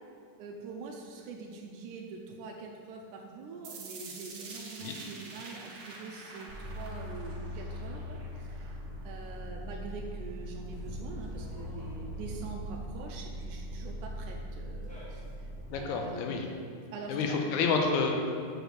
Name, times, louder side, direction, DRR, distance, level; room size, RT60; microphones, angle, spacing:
voice 1, 0.4-8.8 9.0-16.3 16.9-17.4, right 4 dB, 85° right, 0 dB, 2.1 m, -44 dB
sound 1, 3.6-9.6, right 3 dB, 70° right, 2.1 m, -47 dB
sound 2, 6.5-15.8, equal, 5° left, 1.2 m, -40 dB
voice 2, 15.7-16.5 17.1-18.1, left 4 dB, 75° left, 2 dB, 2.1 m, -29 dB
6.2 x 4.8 x 6.7 m, 2.3 s
omnidirectional pair, 3.6 m